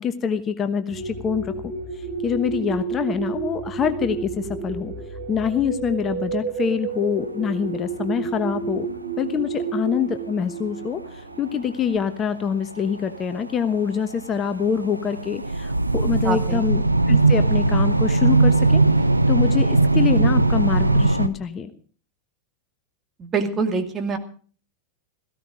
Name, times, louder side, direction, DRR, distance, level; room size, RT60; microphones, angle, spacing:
voice 1, 0.0-8.9 9.2-18.8 19.3-21.7, left 7 dB, 25° left, 10 dB, 1.1 m, -25 dB
sound 1, 0.9-11.9, right 5 dB, 45° right, 6.0 m, -31 dB
sound 2, 7.9-8.0 8.3-9.0 9.4-9.5 10.1-10.2 11.0-11.4 12.1-12.2 12.5-21.3, right 2 dB, 85° right, 0.8 m, -19 dB
voice 2, 16.2-16.6 23.2-24.2, right 4 dB, 25° right, 5 dB, 2.4 m, -25 dB
17.5 x 15.0 x 5.0 m, 0.44 s
figure-of-eight pair, 90°, 0 cm